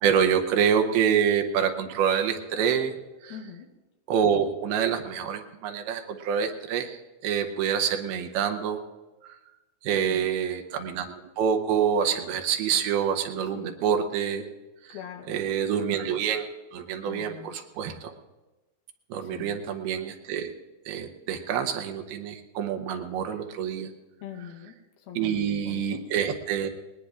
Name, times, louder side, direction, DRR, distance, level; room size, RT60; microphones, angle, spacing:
voice 1, 0.0-2.9 3.2-3.3 4.1-8.8 9.2-9.4 9.8-14.4 15.3-16.4 16.7-18.1 19.1-20.5 20.9-23.9 25.2-26.7, right 8 dB, 80° right, 4 dB, 2.7 m, -26 dB
voice 2, 3.3-3.7 10.0-10.3 13.5-13.8 14.9-15.4 17.1-17.5 19.2-19.7 24.2-26.0, left 9 dB, 80° left, 1 dB, 3.0 m, -43 dB
20.0 x 20.0 x 2.4 m, 1.1 s
omnidirectional pair, 4.4 m